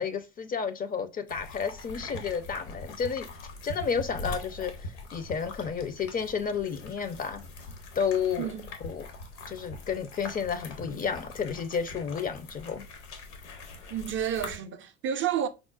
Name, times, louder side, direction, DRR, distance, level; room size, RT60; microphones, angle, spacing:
voice 1, 0.0-3.3 3.6-7.4 8.0-8.5 8.8-9.1 9.5-12.9, left 6 dB, 25° left, 0.4 m, -31 dB
sound 1, 1.3-14.6, left 2 dB, 75° left, 0.9 m, -42 dB
voice 2, 13.9-15.5, right 9 dB, 40° right, 0.4 m, -30 dB
4.7 x 2.0 x 2.3 m
hypercardioid pair, 80°, 33 cm